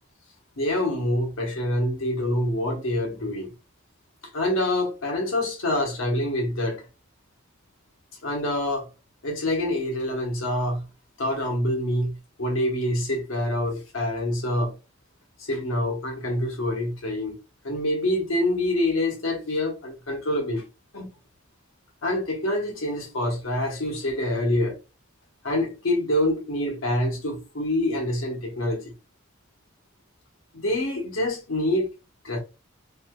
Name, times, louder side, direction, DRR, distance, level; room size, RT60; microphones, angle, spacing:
voice 1, 0.6-3.5 4.3-6.8 8.2-8.9 9.2-10.8 11.2-14.7 15.4-17.4 17.6-20.6 20.9-21.1 22.0-24.8 25.4-28.9 30.5-31.9 32.2-32.4, left 1 dB, 90° left, 1.0 m, -26 dB
3.2 x 2.6 x 2.3 m
head